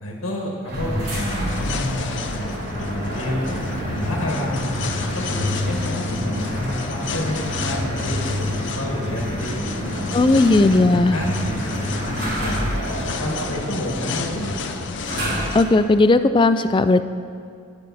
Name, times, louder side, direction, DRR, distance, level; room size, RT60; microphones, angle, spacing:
voice 1, 0.0-3.4 3.8-10.4 10.9-14.8, left 1 dB, 85° left, -1 dB, 1.9 m, -29 dB
sound 1, 0.6-15.8, equal, 55° right, 3.5 m, -28 dB
sound 2, 1.1-15.6, left 4 dB, 55° left, 0.7 m, -32 dB
voice 2, 10.1-11.2 15.5-17.0, left 2 dB, 25° left, 12 dB, 0.3 m, -16 dB
13.5 x 10.5 x 4.2 m, 2.3 s
head